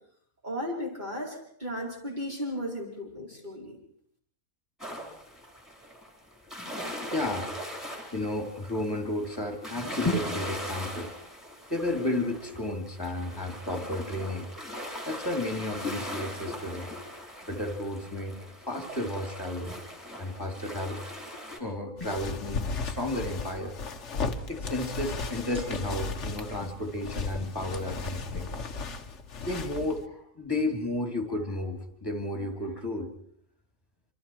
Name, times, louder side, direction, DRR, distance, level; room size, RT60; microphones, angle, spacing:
voice 1, 0.4-3.8, equal, 30° right, -4 dB, 5.0 m, -35 dB
sound 1, 4.8-21.6, left 1 dB, ahead, 4.1 m, -40 dB
voice 2, 7.0-7.5 8.1-11.1 11.7-14.5 15.0-16.9 17.4-18.4 18.7-19.7 20.2-21.0 21.6-23.8 24.5-28.5 29.4-33.1, left 1 dB, 15° left, 4 dB, 2.7 m, -32 dB
sound 2, 22.0-30.0, left 4 dB, 55° left, 1.5 m, -35 dB
sound 3, 25.5-27.4, right 5 dB, 45° right, 3.9 m, -52 dB
27.0 x 26.0 x 4.6 m, 0.67 s
omnidirectional pair, 1.5 m